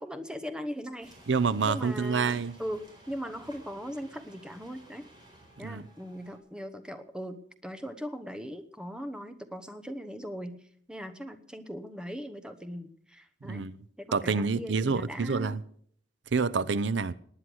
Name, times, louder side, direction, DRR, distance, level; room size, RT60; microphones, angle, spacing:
voice 1, 0.0-1.1 1.6-5.1 5.6-7.4 7.6-10.6 10.9-13.6 14.0-15.6, equal, 5° right, 1.0 m, -39 dB
sound 1, 1.0-6.4, right 1 dB, 25° right, 4.5 m, -55 dB
voice 2, 1.3-2.5 5.6-5.8 13.4-13.7 14.1-15.6 16.3-17.1, right 5 dB, 80° right, 0.6 m, -27 dB
19.0 x 9.9 x 6.3 m
head